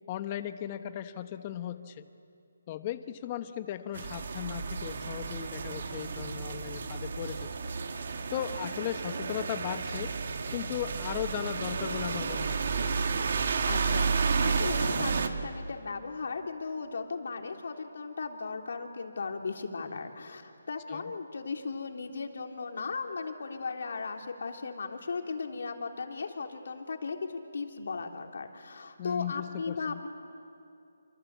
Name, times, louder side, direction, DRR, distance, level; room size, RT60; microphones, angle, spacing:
voice 1, 0.1-2.1 2.7-7.5 8.3-10.2 10.5-12.5 20.9-21.1 29.0-30.0, left 11 dB, 25° left, 10 dB, 1.0 m, -37 dB
sound 1, 3.9-15.3, right 5 dB, 55° right, 2.1 m, -31 dB
voice 2, 13.7-30.1, left 4 dB, 65° left, 3 dB, 3.2 m, -37 dB
28.0 x 25.5 x 8.3 m, 2.5 s
hypercardioid pair, 165°, 0 cm